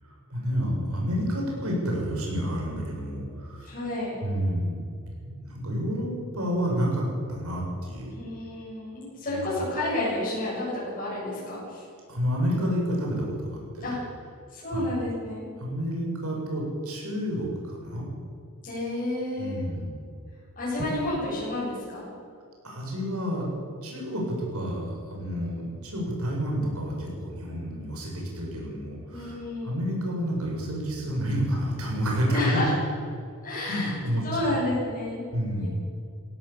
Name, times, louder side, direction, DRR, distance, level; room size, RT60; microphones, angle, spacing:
voice 1, 0.0-3.7 4.2-4.8 5.2-8.1 9.3-9.6 12.1-13.9 14.7-14.8 15.6-18.1 19.4-19.9 22.6-23.5 23.8-32.6 33.7-34.5 35.3-35.7, equal, 80° right, -1 dB, 7.5 m, -29 dB
voice 2, 3.6-4.1 8.1-11.8 13.8-14.0 14.5-15.5 18.6-19.6 20.6-22.1 29.1-29.7 32.3-32.7 33.4-34.0 34.2-35.3 35.6-35.7, left 1 dB, 35° left, -9 dB, 7.7 m, -30 dB
18.0 x 17.0 x 8.8 m, 2.2 s
head